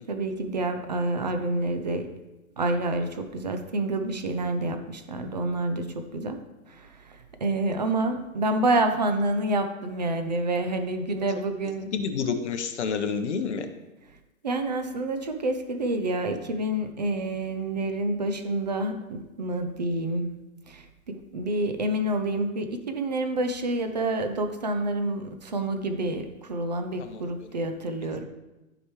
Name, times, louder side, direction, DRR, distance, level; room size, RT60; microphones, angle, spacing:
voice 1, 0.1-2.1 2.6-6.4 6.7-11.9 14.4-20.4 20.7-28.2, right 2 dB, 30° right, 7 dB, 0.5 m, -28 dB
voice 2, 11.9-13.7 27.0-27.2, left 6 dB, 55° left, 7 dB, 1.0 m, -29 dB
13.5 x 4.9 x 3.2 m, 1.1 s
hypercardioid pair, 170°, 42 cm